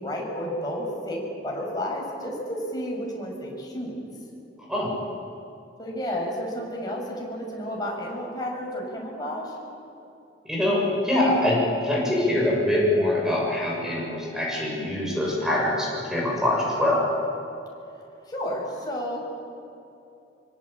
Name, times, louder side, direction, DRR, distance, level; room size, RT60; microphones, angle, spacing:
voice 1, 0.0-4.0 5.8-9.6 18.3-19.2, equal, 25° left, -2 dB, 6.8 m, -31 dB
voice 2, 10.4-17.0, left 1 dB, 5° right, -4 dB, 7.1 m, -24 dB
25.0 x 25.0 x 8.7 m, 2.7 s
head